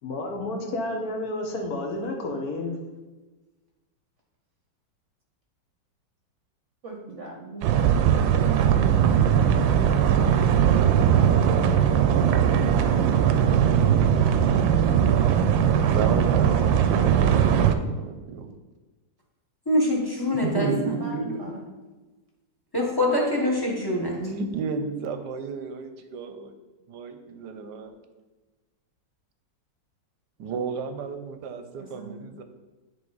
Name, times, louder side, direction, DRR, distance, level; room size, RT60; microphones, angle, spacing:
voice 1, 0.0-2.8, left 2 dB, 60° left, 2 dB, 1.4 m, -30 dB
voice 2, 6.8-9.1 20.8-21.6 31.8-32.2, right 3 dB, 50° right, 0 dB, 1.0 m, -42 dB
sound 1, 7.6-17.7, right 8 dB, 90° right, 1.3 m, -20 dB
voice 3, 15.9-18.5 20.4-21.4 24.1-26.5 26.9-28.0 30.4-32.4, right 5 dB, 75° right, 7 dB, 1.2 m, -32 dB
voice 4, 19.7-20.9 22.7-24.1, left 1 dB, 15° left, -3 dB, 0.9 m, -24 dB
9.8 x 3.5 x 3.9 m, 1.2 s
omnidirectional pair, 2.0 m